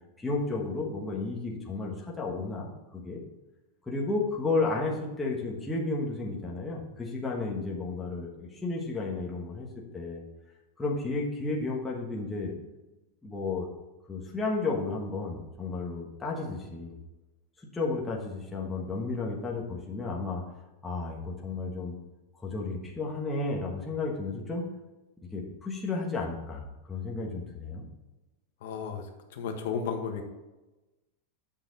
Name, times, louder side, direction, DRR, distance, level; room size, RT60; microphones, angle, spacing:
voice 1, 0.2-3.2 3.9-9.7 9.9-10.2 10.8-12.5 13.2-13.7 14.1-16.9 17.7-20.4 20.8-21.9 22.4-24.6 25.3-27.8, left 3 dB, 5° left, -3 dB, 1.2 m, -32 dB
voice 2, 28.6-30.2, left 6 dB, 65° left, 4 dB, 1.3 m, -34 dB
8.9 x 5.8 x 3.9 m, 1.1 s
supercardioid pair, 170°, 0 cm